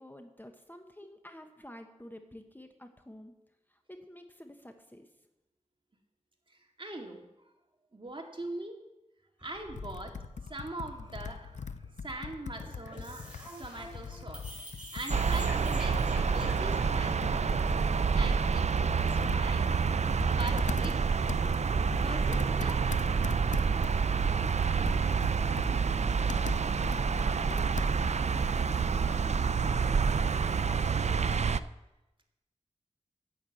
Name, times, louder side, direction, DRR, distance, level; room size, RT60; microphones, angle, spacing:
voice 1, 0.0-3.3 3.7-5.1 23.8-26.8 27.2-31.5, left 1 dB, 15° left, 5 dB, 1.2 m, -52 dB
voice 2, 6.5-7.3 7.9-8.8 9.4-11.8 12.0-17.5 18.1-19.7 20.3-21.0 22.0-23.0 24.4-24.5 29.7-29.8, right 2 dB, 40° right, 2 dB, 2.2 m, -42 dB
sound 1, 9.4-19.5, equal, 10° right, 5.6 m, -48 dB
Computer keyboard, 9.7-28.3, left 6 dB, 70° left, 0.5 m, -43 dB
sound 2, 15.1-31.6, right 5 dB, 65° right, 0.4 m, -28 dB
10.0 x 8.9 x 7.7 m, 0.97 s
wide cardioid pair, 50°, 13 cm